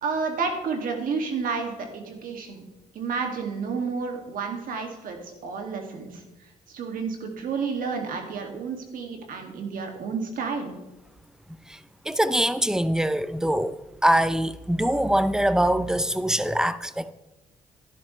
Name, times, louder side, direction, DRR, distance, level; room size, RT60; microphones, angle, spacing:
voice 1, 0.0-2.6 2.9-6.2 6.7-10.7, right 5 dB, 75° right, 2.2 m, -30 dB
voice 2, 11.7-17.1, right 1 dB, 5° right, 0.6 m, -23 dB
11.5 x 11.0 x 3.2 m
cardioid pair, 75°, 15 cm